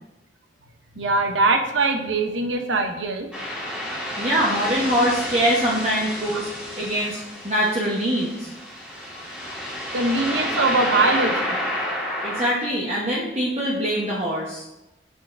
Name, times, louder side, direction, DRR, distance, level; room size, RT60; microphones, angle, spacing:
voice 1, 1.0-3.3 9.4-9.6 9.9-11.6, right 3 dB, 85° right, 5 dB, 0.7 m, -22 dB
sound 1, 3.3-12.5, equal, 5° right, 1.6 m, -30 dB
voice 2, 4.1-6.5 6.8-8.5 12.2-14.6, equal, 35° right, -5 dB, 0.9 m, -23 dB
7.0 x 6.2 x 2.5 m, 0.94 s
head